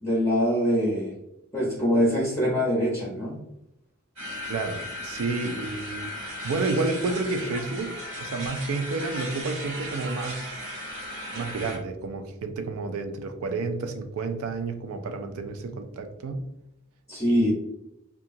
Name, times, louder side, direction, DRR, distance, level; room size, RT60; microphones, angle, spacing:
voice 1, 0.0-1.1 1.5-3.3 17.1-17.5, equal, 15° left, -6 dB, 0.6 m, -23 dB
sound 1, 4.2-11.8, left 1 dB, 60° right, 0.8 m, -36 dB
voice 2, 4.5-10.6 11.3-16.5 17.3-17.5, right 3 dB, 80° right, 8 dB, 0.4 m, -30 dB
2.8 x 2.3 x 2.5 m, 0.84 s
head